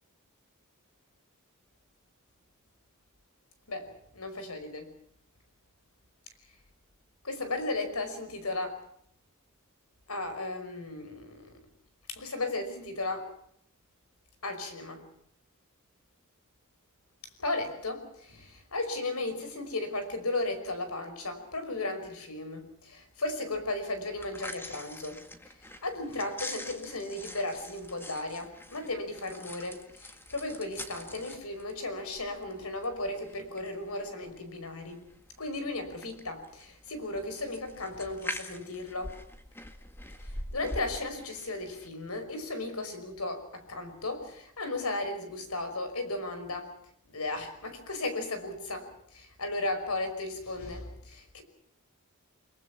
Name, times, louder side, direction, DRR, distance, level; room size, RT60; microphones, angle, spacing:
voice 1, 3.7-4.9 7.2-8.8 10.1-11.6 12.1-13.3 14.4-15.1 17.4-25.3 25.8-35.0 35.4-39.2 40.2-46.7 47.1-51.4, left 2 dB, 75° left, 8 dB, 5.5 m, -35 dB
sound 1, 24.1-41.9, left 1 dB, 10° left, 1.9 m, -45 dB
30.0 x 21.5 x 5.9 m, 0.67 s
head